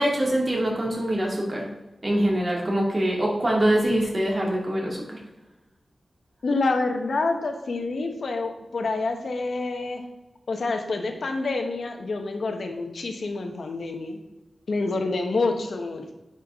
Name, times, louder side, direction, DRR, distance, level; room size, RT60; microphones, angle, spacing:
voice 1, 0.0-1.7 2.0-5.0, right 1 dB, 35° right, -2 dB, 2.2 m, -24 dB
voice 2, 6.4-10.0 10.5-14.2 14.7-16.1, left 3 dB, 75° left, 5 dB, 1.0 m, -27 dB
9.6 x 5.6 x 3.6 m, 1.1 s
wide cardioid pair, 95°, 0 cm